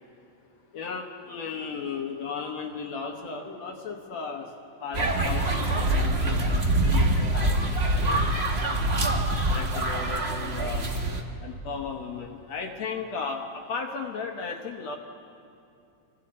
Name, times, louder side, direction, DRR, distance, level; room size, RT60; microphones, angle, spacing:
voice 1, 0.7-4.5 4.8-8.2 9.5-10.9 11.4-15.0, left 5 dB, 65° left, 1 dB, 2.2 m, -35 dB
sound 1, 4.9-11.2, right 1 dB, 40° right, 0.9 m, -25 dB
27.5 x 23.5 x 4.3 m, 2.6 s
omnidirectional pair, 3.5 m